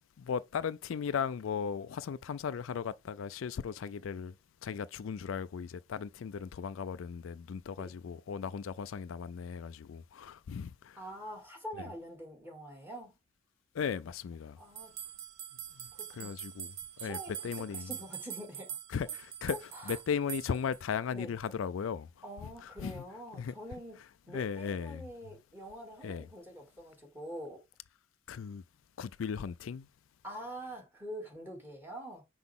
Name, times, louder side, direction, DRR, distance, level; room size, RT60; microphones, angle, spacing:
voice 1, 0.2-4.3 4.6-11.0 11.8-11.9 13.8-14.6 16.1-16.7 17.0-17.2 17.4-17.9 18.9-19.6 19.9-22.1 22.6-23.0 23.3-23.5 24.3-25.0 26.0-26.2 28.3-28.6 29.0-29.9, left 6 dB, 70° left, 0.4 m, -36 dB
voice 2, 11.0-13.1 14.6-14.9 15.9-16.3 17.0-17.3 17.7-18.8 19.7-20.0 21.1-21.3 22.2-27.6 30.2-32.2, equal, 10° right, 2.6 m, -45 dB
sound 1, 14.8-20.8, right 10 dB, 80° right, 0.7 m, -43 dB
6.0 x 4.7 x 3.6 m
head